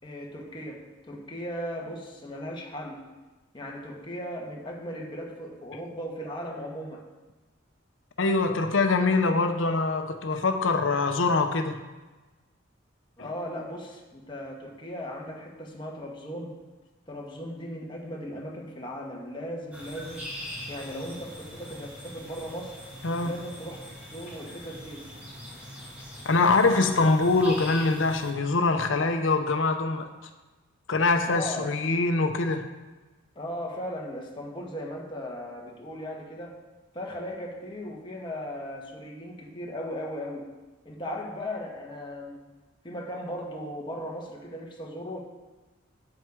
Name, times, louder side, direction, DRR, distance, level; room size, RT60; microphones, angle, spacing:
voice 1, 0.0-3.1 3.5-7.0 13.2-16.6 17.1-20.3 20.7-22.7 23.2-23.8 24.1-25.1 31.3-31.7 33.3-36.6 36.9-40.5 40.8-42.4 42.8-45.2, equal, 25° left, -1 dB, 1.3 m, -37 dB
voice 2, 8.2-11.8 23.0-23.3 26.2-30.1 30.9-32.7, left 3 dB, 75° left, 6 dB, 0.7 m, -24 dB
sound 1, 19.7-28.3, equal, 5° right, 2.3 m, -42 dB
8.4 x 7.7 x 4.8 m, 1.2 s
head